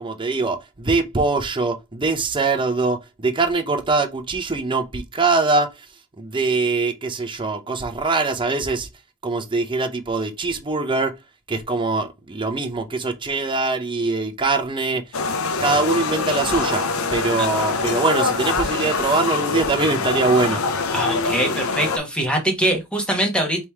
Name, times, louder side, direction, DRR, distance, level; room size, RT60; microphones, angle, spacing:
voice 1, 0.0-5.7 6.2-8.9 9.2-11.1 11.5-15.0 15.6-16.8 17.1-20.6, right 3 dB, 25° right, 0.6 m, -22 dB
sound 1, 15.1-22.0, left 4 dB, 75° left, 0.6 m, -24 dB
voice 2, 20.9-23.6, right 1 dB, 5° left, 1.1 m, -23 dB
3.5 x 3.0 x 4.4 m
head